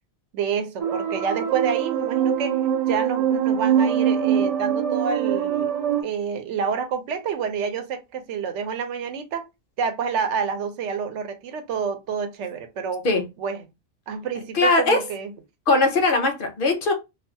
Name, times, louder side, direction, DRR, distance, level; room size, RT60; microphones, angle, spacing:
voice 1, 0.3-2.6 2.9-5.7 6.0-9.5 9.8-13.1 13.4-13.7 14.1-15.3, right 6 dB, 80° right, 0.9 m, -28 dB
sound 1, 0.8-6.0, right 8 dB, 65° right, 0.3 m, -23 dB
voice 2, 14.5-15.0 15.7-16.9, left 3 dB, 55° left, 0.7 m, -20 dB
2.4 x 2.2 x 2.6 m
omnidirectional pair, 1.2 m